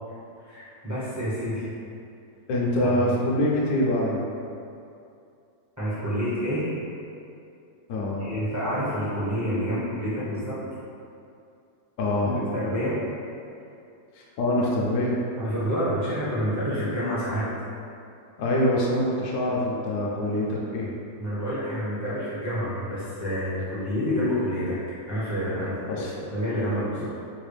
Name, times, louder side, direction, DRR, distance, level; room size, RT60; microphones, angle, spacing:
voice 1, 0.4-1.7 2.9-3.1 5.8-6.7 8.2-10.6 12.2-13.0 15.4-17.5 21.2-24.8 25.1-26.1 26.3-27.1, equal, 20° right, -12 dB, 0.5 m, -28 dB
voice 2, 2.5-4.3 7.9-8.3 12.0-12.4 14.4-15.2 18.4-20.9 25.9-26.1, left 1 dB, 70° left, -4 dB, 0.9 m, -24 dB
4.0 x 2.3 x 3.2 m, 2.6 s
omnidirectional pair, 1.9 m